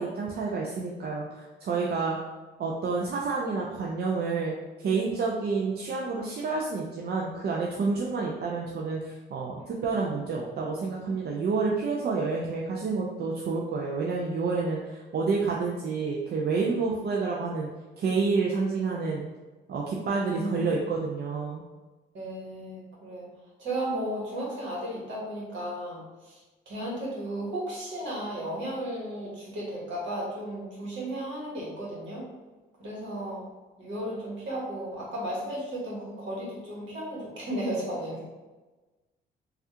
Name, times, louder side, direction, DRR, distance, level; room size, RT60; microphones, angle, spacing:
voice 1, 0.0-2.2 2.6-17.7 18.0-19.3 19.7-21.6, right 4 dB, 55° right, -2 dB, 0.5 m, -29 dB
voice 2, 20.3-20.6 22.1-23.3 23.6-26.4 26.6-32.3 32.8-33.4 33.8-38.2, right 1 dB, 70° right, -5 dB, 1.4 m, -34 dB
3.2 x 2.4 x 2.8 m, 1.2 s
cardioid pair, 90°, 20 cm